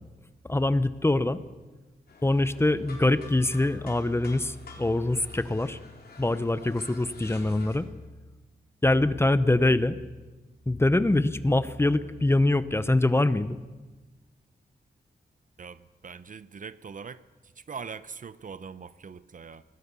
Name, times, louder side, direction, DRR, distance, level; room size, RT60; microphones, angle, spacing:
voice 1, 0.5-1.4 2.2-5.8 6.2-7.9 8.8-10.0 10.7-13.6, left 2 dB, 15° left, 13 dB, 0.8 m, -24 dB
sound 1, 2.1-7.8, left 3 dB, 70° left, 4.3 m, -49 dB
voice 2, 15.6-19.6, right 6 dB, 50° right, 15 dB, 0.8 m, -42 dB
25.0 x 20.0 x 6.9 m, 1.2 s
wide cardioid pair, 125°, 17 cm